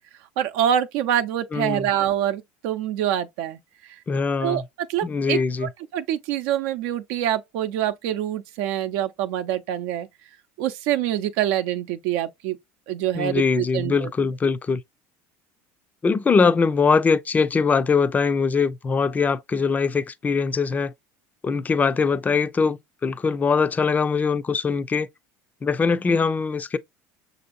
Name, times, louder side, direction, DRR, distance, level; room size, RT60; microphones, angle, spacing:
voice 1, 0.4-3.9 4.4-4.6 4.9-10.1 10.6-12.6 12.9-14.1, right 11 dB, 75° right, 0.6 m, -25 dB
voice 2, 1.5-1.9 4.1-4.6 5.0-5.7 13.1-14.8 16.0-20.9 21.4-25.1 25.6-26.8, left 5 dB, 20° left, 0.5 m, -22 dB
6.0 x 2.7 x 2.6 m
supercardioid pair, 110°, 8 cm